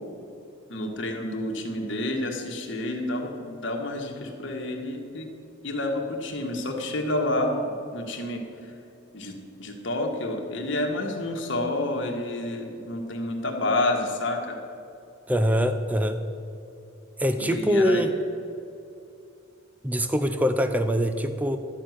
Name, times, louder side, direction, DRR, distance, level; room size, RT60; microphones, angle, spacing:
voice 1, 0.7-5.3 5.6-8.7 9.1-14.6 17.3-18.0, left 1 dB, 60° left, 2 dB, 1.6 m, -29 dB
voice 2, 15.3-16.2 17.2-18.1 19.8-21.6, equal, 5° right, 8 dB, 0.6 m, -23 dB
12.0 x 6.7 x 9.4 m, 2.6 s
head